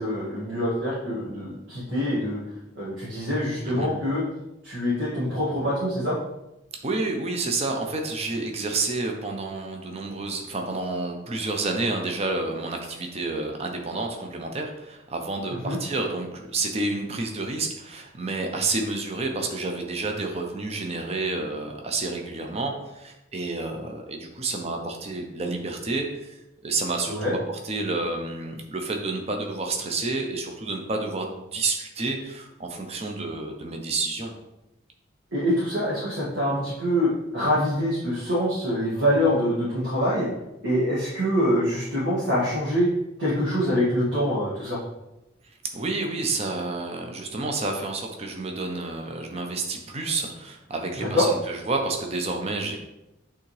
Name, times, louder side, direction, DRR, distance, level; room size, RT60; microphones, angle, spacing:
voice 1, 0.0-2.4 2.8-4.2 4.6-6.2 15.6-15.8 27.1-27.3 35.3-40.3 40.6-42.9 43.2-44.8 51.0-51.3, equal, 60° right, -10 dB, 2.0 m, -25 dB
voice 2, 6.8-27.4 27.6-34.3 45.7-52.8, right 3 dB, 35° right, 3 dB, 0.7 m, -29 dB
8.4 x 3.6 x 3.3 m, 0.94 s
head